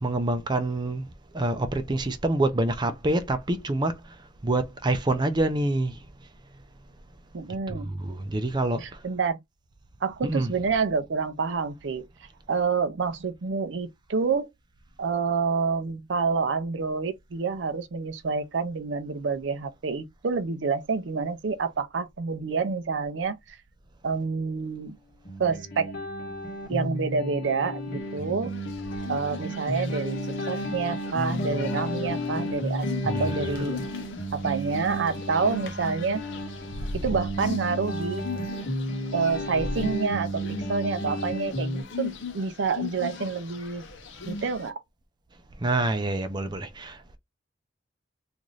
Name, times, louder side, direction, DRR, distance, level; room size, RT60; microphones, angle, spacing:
voice 1, 0.0-1.1 1.3-3.9 4.4-5.9 7.7-8.8 10.2-10.5 33.0-33.2 45.6-47.2, right 2 dB, 25° right, 0.5 m, -26 dB
voice 2, 7.3-7.9 8.8-9.4 10.0-12.1 12.5-14.5 15.0-23.6 24.0-25.0 25.4-25.9 26.7-28.5 29.1-30.2 30.5-33.8 34.3-36.2 36.9-38.3 39.1-40.4 40.7-43.9 44.2-44.7, right 5 dB, 70° right, 0.5 m, -28 dB
sound 1, 25.3-41.8, equal, 55° left, 1.4 m, -32 dB
sound 2, 28.2-44.7, left 3 dB, 80° left, 0.8 m, -38 dB
3.1 x 2.5 x 3.8 m
head